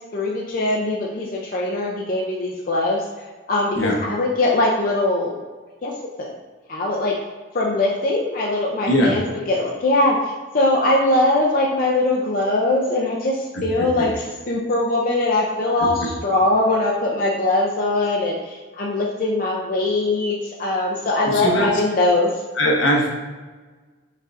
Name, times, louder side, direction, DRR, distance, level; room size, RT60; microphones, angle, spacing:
voice 1, 0.1-3.0 3.5-5.4 5.8-5.9 6.2-6.3 6.7-7.1 7.5-10.2 10.5-22.3, left 2 dB, 45° left, -3 dB, 0.5 m, -21 dB
voice 2, 21.2-21.7 22.6-23.1, equal, 75° left, -1 dB, 1.0 m, -19 dB
5.3 x 3.7 x 2.5 m, 1.3 s
head